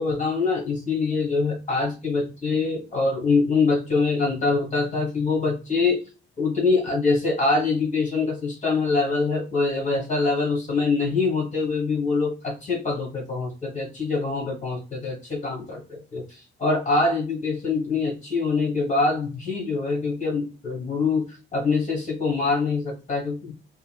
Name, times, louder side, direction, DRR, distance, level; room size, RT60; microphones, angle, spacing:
voice 1, 0.0-6.0 6.4-23.5, left 4 dB, 40° left, -1 dB, 1.3 m, -24 dB
4.2 x 2.1 x 2.3 m, 0.32 s
cardioid pair, 90°, 20 cm